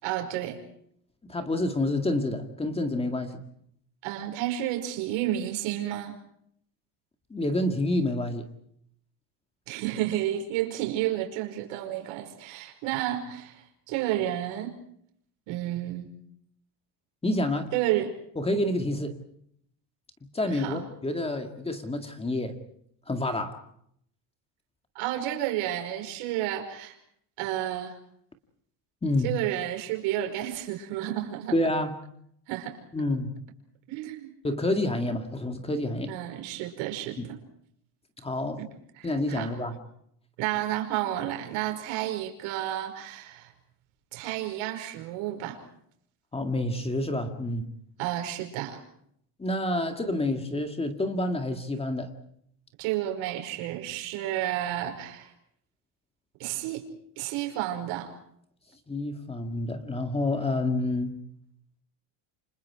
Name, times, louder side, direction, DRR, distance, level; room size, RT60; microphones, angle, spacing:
voice 1, 0.0-0.6 4.0-6.2 9.7-14.8 15.5-16.1 17.7-18.1 20.5-20.8 25.0-27.0 27.4-28.0 29.2-31.6 32.5-32.8 33.9-34.3 36.1-37.4 38.6-38.7 39.0-39.5 40.4-43.5 44.1-45.6 48.0-48.8 52.8-55.3 56.4-56.8 57.2-58.1, right 13 dB, 75° right, 4 dB, 5.4 m, -31 dB
voice 2, 1.3-3.4 7.3-8.5 17.2-17.7 18.4-19.2 20.3-22.6 23.1-23.6 29.0-29.3 31.5-32.0 32.9-33.3 34.4-36.1 37.2-37.3 38.2-38.6 39.0-39.8 46.3-47.7 49.4-52.1 58.9-61.2, left 1 dB, 10° left, 6 dB, 2.0 m, -28 dB
29.0 x 26.5 x 4.8 m, 0.69 s
cardioid pair, 150°, 48 cm